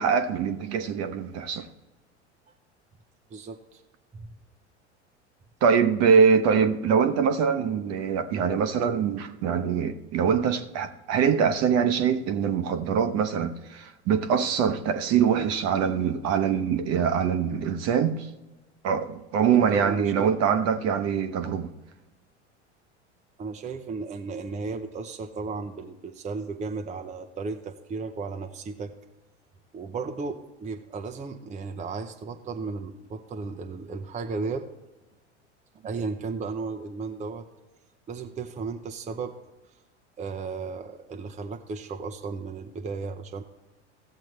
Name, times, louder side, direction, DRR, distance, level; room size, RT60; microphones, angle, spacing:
voice 1, 0.0-1.7 5.6-18.3 18.8-21.7, right 7 dB, 45° right, 0.9 m, -23 dB
voice 2, 3.3-3.8 4.1-4.3 19.5-20.3 23.4-28.9 29.7-34.7 35.8-37.4 38.1-39.4 40.2-43.4, right 4 dB, 20° right, 0.7 m, -34 dB
16.0 x 7.5 x 3.1 m
figure-of-eight pair, 80°, 35 cm